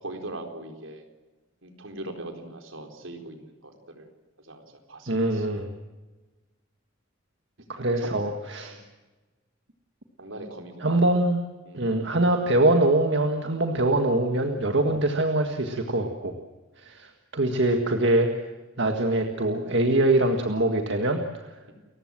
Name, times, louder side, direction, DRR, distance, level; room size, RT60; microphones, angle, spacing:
voice 1, 0.0-1.1 1.6-4.1 4.4-5.5 8.0-8.2 8.7-8.8 10.2-11.0 11.6-11.9, right 2 dB, 80° right, 5 dB, 4.2 m, -40 dB
voice 2, 5.1-5.7 7.7-8.8 10.8-11.4 11.7-16.3 16.8-18.3 18.8-21.7, right 1 dB, 60° right, 5 dB, 1.8 m, -23 dB
29.5 x 15.5 x 7.7 m, 1.2 s
head